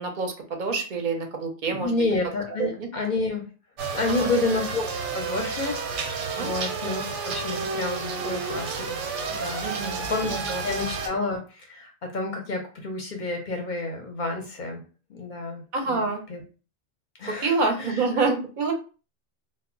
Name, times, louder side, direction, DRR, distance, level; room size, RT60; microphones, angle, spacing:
voice 1, 0.0-1.9 2.6-2.9 4.1-4.3 6.4-6.5 9.6-10.6 15.7-16.2 17.3-18.7, right 4 dB, 50° right, 4 dB, 0.6 m, -27 dB
voice 2, 1.7-3.5 3.9-4.8 5.1-9.0 9.3-9.7 10.1-10.3 10.6-14.8 15.1-16.4 17.2-18.0, left 3 dB, 55° left, 2 dB, 0.6 m, -30 dB
sound 1, 3.8-11.1, right 5 dB, 90° right, 0.9 m, -31 dB
2.1 x 2.0 x 3.6 m, 0.35 s
omnidirectional pair, 1.2 m